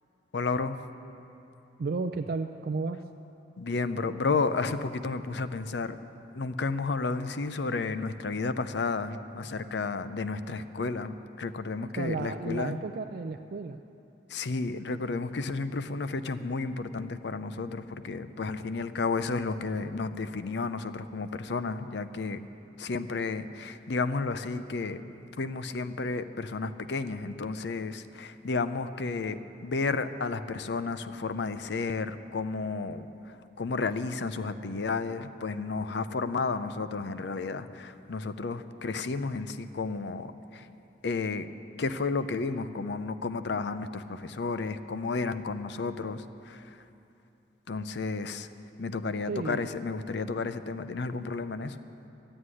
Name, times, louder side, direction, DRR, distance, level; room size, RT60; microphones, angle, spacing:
voice 1, 0.3-0.8 3.6-6.0 6.4-12.8 14.3-22.4 22.8-25.0 25.4-40.7 41.0-41.5 41.8-46.8 47.7-48.5 48.8-51.8, left 4 dB, 65° left, 12 dB, 0.5 m, -32 dB
voice 2, 1.8-3.0 12.0-13.8 49.3-49.7, right 4 dB, 55° right, 7 dB, 0.4 m, -33 dB
13.0 x 7.9 x 9.7 m, 2.8 s
head